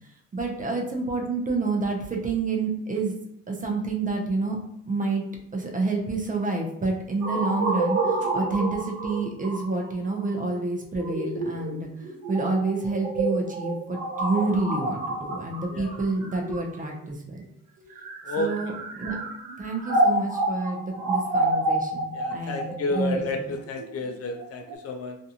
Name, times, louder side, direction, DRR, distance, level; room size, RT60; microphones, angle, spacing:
voice 1, 0.3-3.1 3.5-4.6 4.9-5.2 5.5-11.9 12.3-17.5 18.4-19.2 19.6-23.5, right 3 dB, 25° right, 1 dB, 0.6 m, -28 dB
sound 1, 7.2-17.1 17.8-24.8, right 2 dB, 80° right, 0.7 m, -29 dB
voice 2, 22.1-25.2, left 2 dB, 50° left, 4 dB, 0.5 m, -31 dB
2.6 x 2.3 x 2.8 m, 0.72 s
cardioid pair, 90°, 30 cm